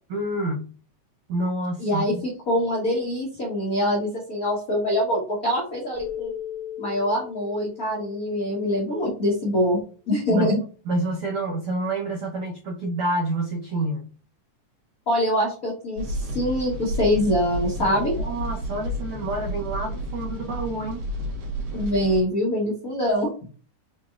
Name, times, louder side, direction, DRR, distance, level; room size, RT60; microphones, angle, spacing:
voice 1, 0.1-0.7 1.3-2.2 10.3-10.5 10.8-14.1 17.9-21.0, right 2 dB, 85° right, -1 dB, 1.2 m, -28 dB
voice 2, 1.8-6.3 6.8-9.8 10.1-10.6 15.1-18.1 21.7-23.5, equal, 75° left, -4 dB, 0.8 m, -24 dB
Keyboard (musical), 6.0-9.2, left 9 dB, 35° right, 1.1 m, -37 dB
sound 1, 16.0-22.2, equal, 70° right, 2.6 m, -31 dB
5.8 x 3.1 x 2.4 m, 0.37 s
omnidirectional pair, 3.6 m